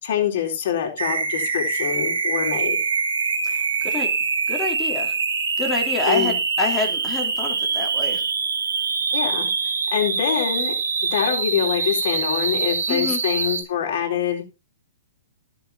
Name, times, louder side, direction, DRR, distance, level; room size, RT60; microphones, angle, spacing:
voice 1, 0.0-2.8 6.1-6.4 9.1-9.5 9.9-10.7 11.1-14.4, left 9 dB, 55° left, 1 dB, 4.0 m, -24 dB
sound 1, 1.0-13.6, right 5 dB, 80° right, 2.4 m, -24 dB
voice 2, 3.4-4.1 4.5-5.1 5.6-8.2 12.9-13.2, left 3 dB, 15° left, 2 dB, 3.0 m, -27 dB
12.0 x 7.2 x 4.2 m, 0.29 s
hypercardioid pair, 130°, 0 cm